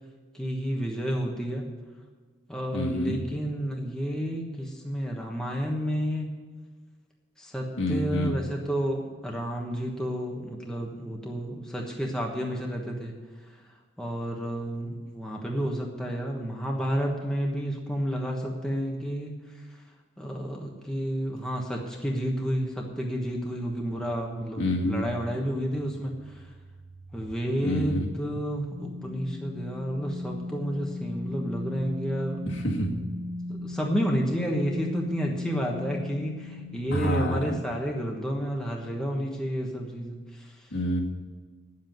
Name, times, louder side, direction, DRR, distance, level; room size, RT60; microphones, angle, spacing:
voice 1, 0.3-1.7 2.5-6.3 7.4-13.2 14.0-19.3 20.2-26.5 27.1-32.4 33.5-40.7, equal, 5° left, -1 dB, 1.2 m, -31 dB
voice 2, 2.7-3.2 7.8-8.3 24.6-25.1 27.6-28.1 32.5-33.0 36.9-37.4 40.7-41.0, equal, 70° left, -1 dB, 2.0 m, -27 dB
sound 1, 23.9-27.3 27.8-37.4, left 2 dB, 25° right, 2.6 m, -38 dB
9.6 x 7.6 x 9.2 m, 1.4 s
head